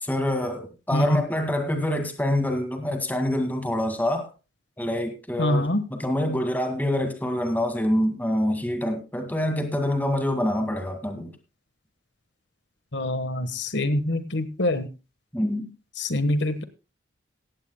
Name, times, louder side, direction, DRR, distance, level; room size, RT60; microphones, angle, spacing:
voice 1, 0.0-4.3 4.8-11.3 15.3-15.7, left 1 dB, 10° left, 6 dB, 2.0 m, -26 dB
voice 2, 0.9-1.2 5.4-5.8 12.9-14.9 16.0-16.6, left 1 dB, 60° left, 10 dB, 1.3 m, -25 dB
17.5 x 15.0 x 2.2 m, 0.30 s
head